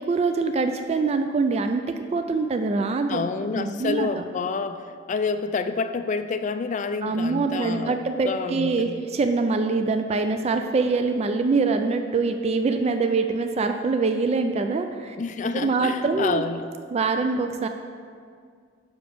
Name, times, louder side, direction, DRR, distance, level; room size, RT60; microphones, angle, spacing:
voice 1, 0.0-1.8 2.1-3.2 3.6-4.2 7.0-15.2 15.5-16.4 16.9-17.7, right 4 dB, 35° right, 7 dB, 0.3 m, -24 dB
voice 2, 3.1-9.0 15.2-16.7, left 4 dB, 40° left, 10 dB, 0.3 m, -28 dB
5.9 x 5.2 x 6.8 m, 2.1 s
head